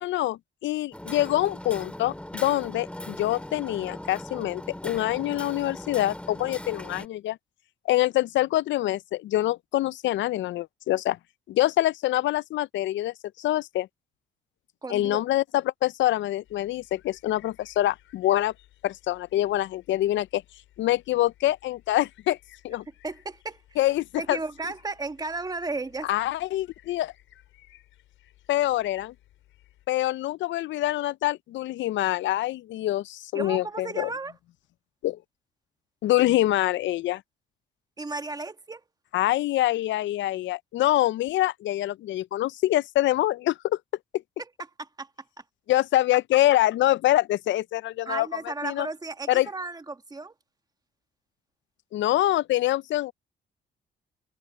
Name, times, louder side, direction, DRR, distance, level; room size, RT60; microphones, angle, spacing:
voice 1, 0.0-7.4 7.9-11.2 11.5-13.9 14.9-18.5 18.8-20.4 20.8-22.4 22.6-22.8 23.8-24.4 26.0-27.1 28.5-29.1 29.9-34.1 35.0-35.2 36.0-37.2 39.1-43.8 45.7-48.3 48.6-48.9 49.3-49.5 51.9-53.1, left 15 dB, 70° left, 0.4 m, -25 dB
Hammer, 0.9-7.1, left 1 dB, 5° left, 2.3 m, -39 dB
voice 2, 14.8-15.2 23.0-23.8 24.2-26.1 33.3-34.3 38.0-38.8 44.8-45.1 48.0-50.3, right 3 dB, 20° right, 1.4 m, -34 dB
sound 1, 16.4-29.9, left 14 dB, 90° left, 5.8 m, -59 dB
cardioid pair, 90°, 20 cm